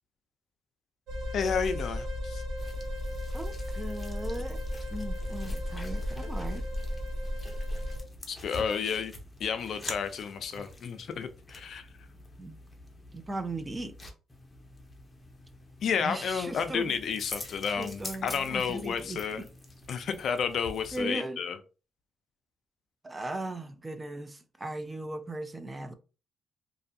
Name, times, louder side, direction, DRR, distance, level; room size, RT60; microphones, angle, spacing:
sound 1, 1.1-8.0, left 1 dB, 75° right, 1.0 m, -34 dB
voice 1, 1.3-2.4 8.3-9.1 9.4-11.9 15.8-19.4 19.9-21.6, left 6 dB, 60° left, 0.4 m, -31 dB
sound 2, 2.6-21.0, left 2 dB, 20° left, 0.6 m, -46 dB
voice 2, 3.3-4.6 4.9-6.6 10.6-10.7 12.4-12.6 13.1-13.9 16.0-16.9 17.5-19.5 20.9-21.4 23.0-25.9, right 1 dB, 20° right, 0.3 m, -38 dB
2.5 x 2.3 x 2.6 m
cardioid pair, 90°, 0 cm